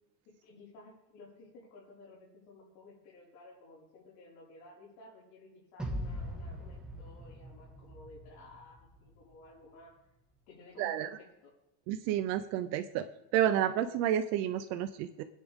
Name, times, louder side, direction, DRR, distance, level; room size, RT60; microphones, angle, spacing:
voice 1, 0.2-9.9 10.5-11.5, left 2 dB, 65° left, -6 dB, 5.1 m, -55 dB
sound 1, 5.8-9.1, equal, ahead, 1.5 m, -41 dB
voice 2, 10.8-11.1 11.9-13.1 13.3-15.2, right 11 dB, 35° right, 10 dB, 0.5 m, -30 dB
22.5 x 10.5 x 3.6 m, 0.90 s
supercardioid pair, 160°, 49 cm